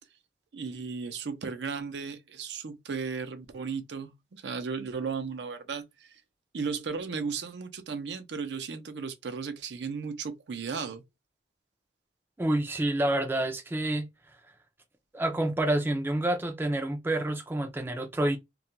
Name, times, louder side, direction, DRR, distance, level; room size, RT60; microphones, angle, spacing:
voice 1, 0.5-6.2 6.5-11.0, right 5 dB, 80° right, 0.5 m, -35 dB
voice 2, 12.4-14.1 15.1-18.4, right 1 dB, 10° right, 0.3 m, -28 dB
2.3 x 2.1 x 2.7 m
head